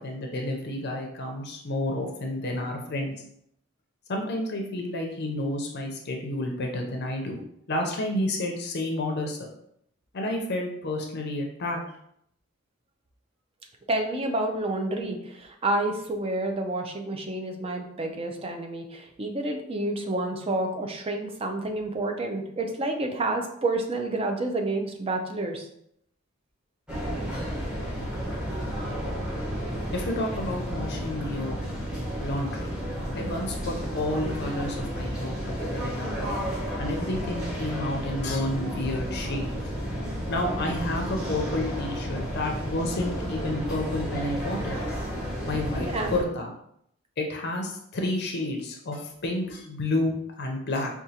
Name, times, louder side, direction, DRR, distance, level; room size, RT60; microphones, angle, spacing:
voice 1, 0.0-3.1 4.1-7.4 7.7-9.5 10.1-11.8 28.9-29.0 29.9-31.6 32.2-32.7 33.1-36.3 36.8-39.5 40.3-44.7 45.5-46.5 47.2-50.9, left 1 dB, 50° left, 2 dB, 0.6 m, -30 dB
voice 2, 13.9-25.7 45.8-46.2, right 2 dB, 25° right, 3 dB, 0.5 m, -29 dB
sound 1, 26.9-46.2, equal, 5° right, 0.8 m, -32 dB
4.9 x 2.4 x 2.8 m, 0.72 s
head